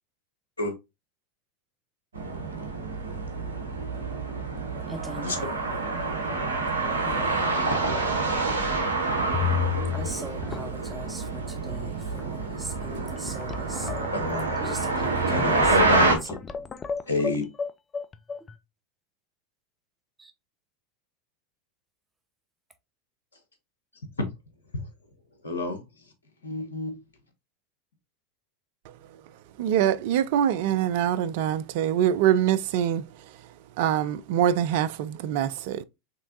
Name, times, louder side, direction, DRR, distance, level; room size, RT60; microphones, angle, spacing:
sound 1, 2.1-16.2, right 3 dB, 80° right, 1.0 m, -27 dB
voice 1, 4.9-5.6 7.0-7.5 9.9-13.9 14.6-16.3 20.2-20.3, right 2 dB, 10° right, 1.0 m, -40 dB
sound 2, 8.1-8.4 8.7-8.8 9.3-10.1 10.4-11.0 11.7-11.8 12.1-12.5 13.0-18.6, left 8 dB, 25° left, 0.5 m, -32 dB
voice 2, 14.1-15.0 15.3-16.4 17.1-17.4 24.2-24.3 25.4-25.8 26.4-27.0, left 2 dB, 85° left, 1.2 m, -29 dB
voice 3, 29.6-33.0 33.8-35.8, right 10 dB, 60° right, 0.4 m, -24 dB
5.4 x 3.3 x 2.6 m
figure-of-eight pair, 85°, 0 cm